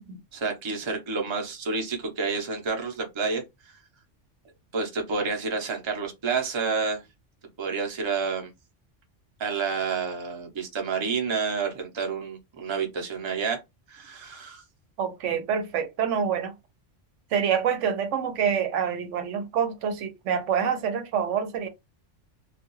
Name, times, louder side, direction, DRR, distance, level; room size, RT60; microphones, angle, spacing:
voice 1, 0.3-3.4 4.7-7.0 7.6-8.5 9.4-13.6 13.9-14.6, right 5 dB, 30° right, 0.6 m, -29 dB
voice 2, 15.0-16.5 17.3-21.7, right 7 dB, 80° right, 0.9 m, -26 dB
2.4 x 2.3 x 3.0 m
omnidirectional pair, 1.3 m